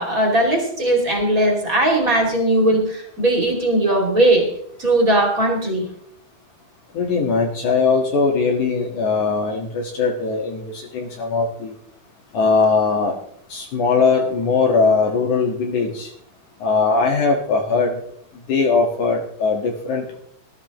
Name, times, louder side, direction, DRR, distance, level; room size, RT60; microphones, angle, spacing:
voice 1, 0.0-4.5 4.8-5.9, right 1 dB, 25° right, 1 dB, 2.6 m, -18 dB
voice 2, 6.9-11.7 12.3-13.2 13.5-16.1 16.6-18.0 18.5-20.0, left 4 dB, 65° left, 0 dB, 2.9 m, -20 dB
19.0 x 13.0 x 3.0 m, 0.66 s
omnidirectional pair, 3.9 m